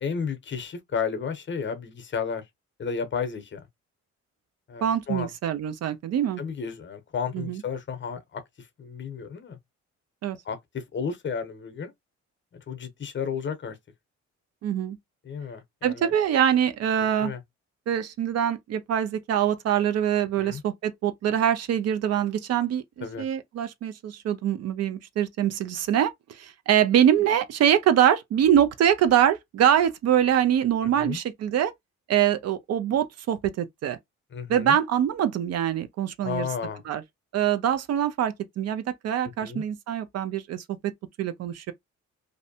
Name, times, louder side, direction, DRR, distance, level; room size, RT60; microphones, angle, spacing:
voice 1, 0.0-2.4 2.8-3.7 4.7-5.3 6.4-9.6 10.4-11.9 12.7-13.8 15.2-16.1 17.2-17.4 20.4-20.6 23.0-23.3 30.8-31.2 34.3-34.8 36.2-36.8 39.4-39.6, left 6 dB, 40° left, 0.7 m, -32 dB
voice 2, 4.8-6.4 7.3-7.6 10.2-10.4 14.6-15.0 15.8-17.3 17.9-22.8 23.2-31.7 32.1-34.0 34.5-36.5 36.9-37.0 37.3-40.9 41.2-41.7, right 10 dB, 55° right, 0.4 m, -24 dB
2.6 x 2.1 x 2.7 m
cardioid pair, 90°, 30 cm